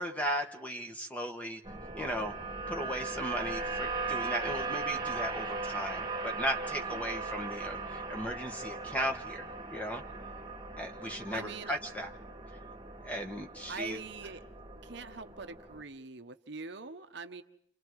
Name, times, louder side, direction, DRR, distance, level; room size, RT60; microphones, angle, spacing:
voice 1, 0.0-1.6 2.0-2.3 2.7-10.0 10.8-12.1 13.0-14.0, equal, 5° left, 4 dB, 1.4 m, -36 dB
sound 1, 1.6-15.8, right 3 dB, 20° right, 1.8 m, -39 dB
voice 2, 11.3-11.8 13.7-14.4 14.8-17.4, right 4 dB, 55° right, 8 dB, 1.0 m, -43 dB
29.5 x 26.5 x 4.8 m, 0.68 s
head